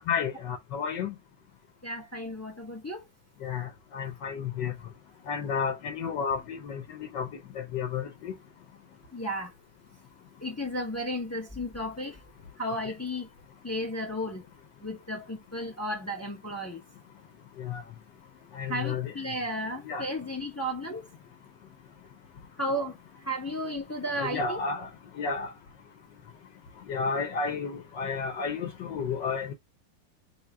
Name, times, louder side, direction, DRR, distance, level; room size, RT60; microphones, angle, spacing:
voice 1, 0.1-1.1 3.4-3.7 3.9-4.7 5.3-7.3 7.7-8.1 17.6-17.8 18.6-19.1 19.9-20.0 24.2-24.9 25.2-25.5 26.9-29.5, left 6 dB, 70° left, 1.3 m, -31 dB
voice 2, 1.8-3.1 9.1-9.5 10.4-12.2 12.6-13.3 13.6-14.4 14.8-16.8 18.7-21.1 22.6-24.6, equal, 20° left, 0.4 m, -34 dB
3.1 x 2.8 x 3.3 m
omnidirectional pair, 2.2 m